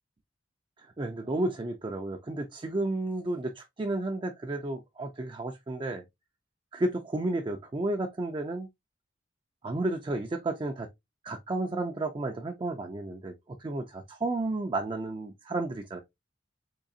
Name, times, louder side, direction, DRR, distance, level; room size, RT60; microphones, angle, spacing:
voice 1, 1.0-6.0 6.7-8.7 9.6-10.9 11.2-13.3 13.6-16.0, right 2 dB, 25° right, 0.3 m, -32 dB
3.7 x 3.2 x 2.4 m
head